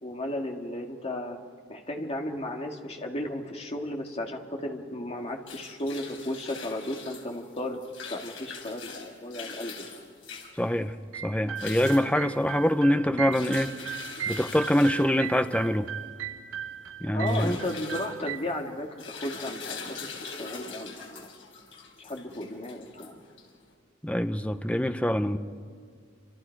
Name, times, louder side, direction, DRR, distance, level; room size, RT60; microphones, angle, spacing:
voice 1, 0.0-1.4 1.7-7.8 8.1-9.9 17.1-21.3 22.0-23.2, left 1 dB, 35° left, 2.2 m, -34 dB
sound 1, 5.2-23.7, left 5 dB, 80° left, 4.4 m, -43 dB
voice 2, 10.6-11.0 11.2-14.0 14.3-15.9 17.0-17.6 24.0-25.4, equal, 5° left, 0.7 m, -25 dB
sound 2, 11.1-18.4, right 9 dB, 85° right, 0.9 m, -37 dB
29.5 x 27.0 x 4.7 m
head